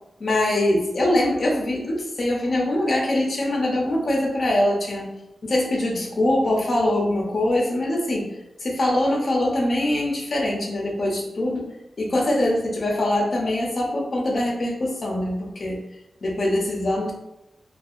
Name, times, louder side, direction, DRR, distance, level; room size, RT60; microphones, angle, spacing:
voice 1, 0.2-5.1 5.4-8.3 8.6-11.6 12.0-15.8 16.2-17.1, left 1 dB, 40° left, -2 dB, 0.6 m, -23 dB
2.6 x 2.3 x 2.4 m, 0.87 s
wide cardioid pair, 155°, 0 cm